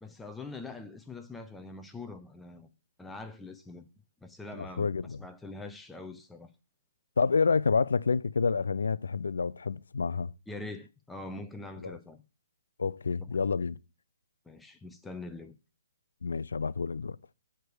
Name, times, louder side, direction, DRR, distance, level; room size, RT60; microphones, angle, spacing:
voice 1, 0.0-2.7 3.0-3.8 4.2-6.5 10.5-12.2 14.5-15.5, left 2 dB, 5° left, 0.4 m, -43 dB
voice 2, 4.6-5.2 7.2-10.3 11.8-12.0 12.8-13.8 16.2-17.2, left 5 dB, 80° left, 0.3 m, -28 dB
7.8 x 3.4 x 4.7 m
hypercardioid pair, 155°, 0 cm